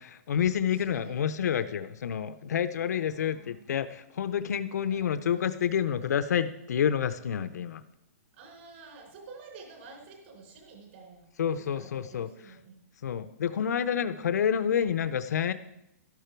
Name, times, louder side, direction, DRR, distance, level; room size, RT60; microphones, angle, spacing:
voice 1, 0.0-7.8 11.4-12.5 13.0-15.5, left 8 dB, 75° left, 12 dB, 0.6 m, -29 dB
voice 2, 0.8-1.2 3.1-3.6 4.8-5.1 8.4-11.3 11.7-12.7 13.4-14.2, right 4 dB, 45° right, 2 dB, 4.0 m, -50 dB
12.5 x 12.0 x 4.6 m, 0.85 s
hypercardioid pair, 170°, 9 cm